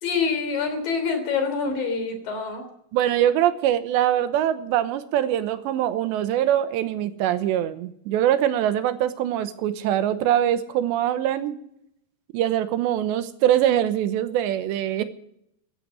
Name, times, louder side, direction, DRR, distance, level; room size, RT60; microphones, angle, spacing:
voice 1, 0.0-2.6, left 5 dB, 50° left, 7 dB, 4.6 m, -26 dB
voice 2, 2.9-11.6 12.3-15.0, right 11 dB, 80° right, 11 dB, 3.0 m, -23 dB
15.5 x 11.5 x 7.5 m, 0.73 s
omnidirectional pair, 5.4 m